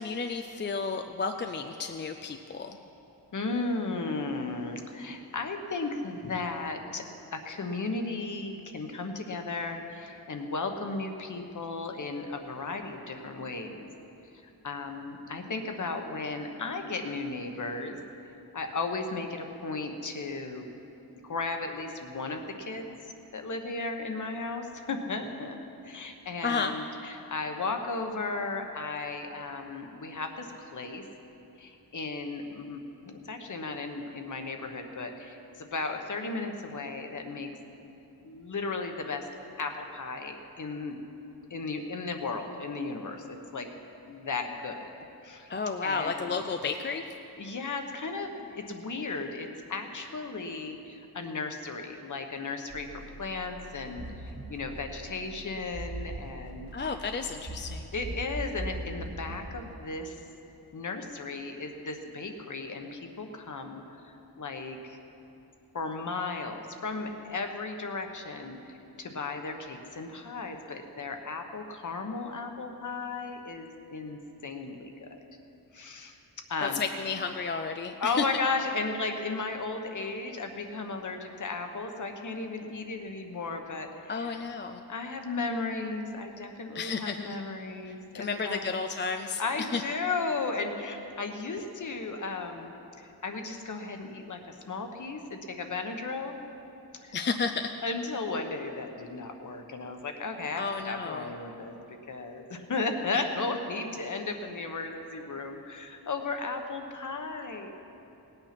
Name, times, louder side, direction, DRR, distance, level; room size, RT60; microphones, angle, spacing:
voice 1, 0.0-2.8 26.4-26.7 45.5-47.1 56.7-57.9 76.6-78.3 84.1-84.8 86.7-87.2 87.9-89.8 97.1-97.7 100.5-101.3, left 5 dB, 30° left, 6 dB, 0.4 m, -32 dB
voice 2, 3.3-7.0 7.3-13.9 14.6-18.0 18.5-20.7 21.2-22.9 23.3-25.6 25.8-31.1 31.6-32.8 33.1-37.5 38.2-39.3 39.6-41.0 41.5-43.7 44.1-44.9 45.2-45.5 45.8-46.3 47.4-56.9 57.9-60.2 60.7-65.0 65.7-75.1 75.7-76.2 76.5-76.8 78.0-84.4 84.9-88.7 89.4-92.7 93.0-94.4 94.7-96.4 97.0-97.1 97.8-107.7, left 3 dB, 50° left, 5 dB, 1.1 m, -35 dB
sound 1, 52.7-59.5, right 2 dB, 45° right, 2.1 m, -41 dB
18.5 x 8.9 x 5.9 m, 2.9 s
wide cardioid pair, 180°, 39 cm